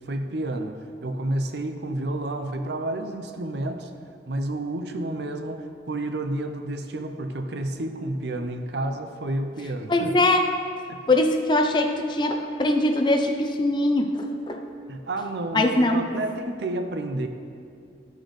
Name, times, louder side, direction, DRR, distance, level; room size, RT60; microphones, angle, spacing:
voice 1, 0.1-3.9 4.3-10.1 10.9-11.0 14.9-17.3, right 1 dB, 70° right, 6 dB, 0.6 m, -30 dB
voice 2, 9.9-10.5 11.1-14.6 15.5-16.0, left 1 dB, 25° left, 4 dB, 0.5 m, -22 dB
12.0 x 6.4 x 3.2 m, 2.3 s
head